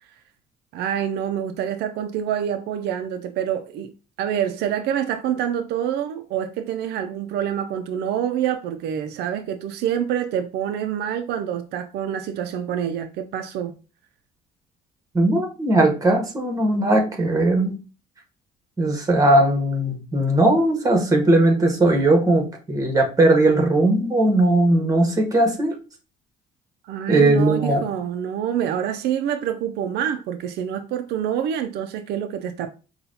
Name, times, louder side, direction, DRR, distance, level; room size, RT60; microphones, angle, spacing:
voice 1, 0.7-13.8 26.8-32.7, right 9 dB, 75° right, 0.4 m, -26 dB
voice 2, 15.1-17.8 18.8-25.8 27.1-27.9, right 1 dB, 20° right, 1.2 m, -18 dB
5.5 x 2.3 x 2.6 m
cardioid pair, 110°, 17 cm